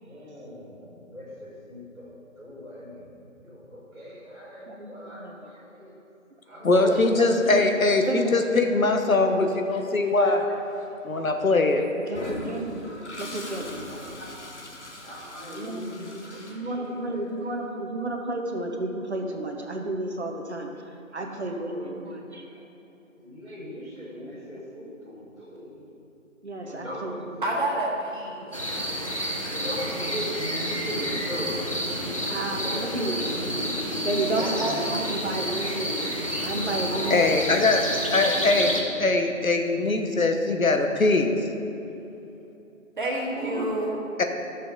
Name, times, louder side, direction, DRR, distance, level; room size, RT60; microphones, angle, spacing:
voice 1, 0.0-5.9 6.4-7.5 8.2-8.3 10.2-10.3 10.7-10.8 12.1-12.4 13.2-13.5 13.8-14.3 15.0-17.2 21.2-22.7 23.1-25.8 26.6-27.2 28.4-28.5 29.4-33.1 34.1-35.0 36.5-37.3 38.2-38.6 43.3-43.8, equal, ahead, -21 dB, 1.4 m, -38 dB
voice 2, 4.7-5.3 6.7-7.3 7.6-8.4 12.1-13.9 15.4-15.9 16.5-22.4 26.4-27.4 32.3-33.2 34.0-37.6, right 2 dB, 55° right, 2 dB, 1.0 m, -32 dB
voice 3, 6.6-10.4 11.0-11.9 37.1-41.4 44.2-44.3, left 3 dB, 80° left, 5 dB, 1.1 m, -22 dB
Toilet flush, 12.1-17.2, left 1 dB, 55° left, 1.4 m, -40 dB
voice 4, 27.4-28.5 34.4-35.4 43.0-44.0, right 1 dB, 35° right, -3 dB, 1.6 m, -29 dB
sound 1, 28.5-38.8, equal, 25° left, 0.6 m, -30 dB
11.5 x 6.8 x 3.9 m, 3.0 s
figure-of-eight pair, 160°, 41 cm